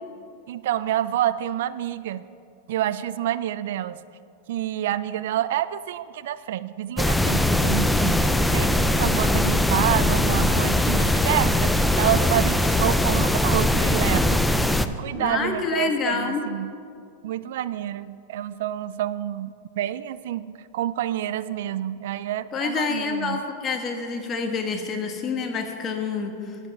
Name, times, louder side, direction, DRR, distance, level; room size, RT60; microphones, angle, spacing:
voice 1, 0.5-2.2 2.7-4.0 4.5-8.2 8.5-14.4 14.9-16.7 17.2-23.4, right 12 dB, 70° right, 16 dB, 0.3 m, -28 dB
sound 1, 7.0-14.9, left 1 dB, 5° left, 0.4 m, -21 dB
voice 2, 15.1-16.4 22.5-26.6, left 5 dB, 25° left, 4 dB, 1.3 m, -27 dB
10.5 x 7.9 x 6.0 m, 2.4 s
supercardioid pair, 140°, 0 cm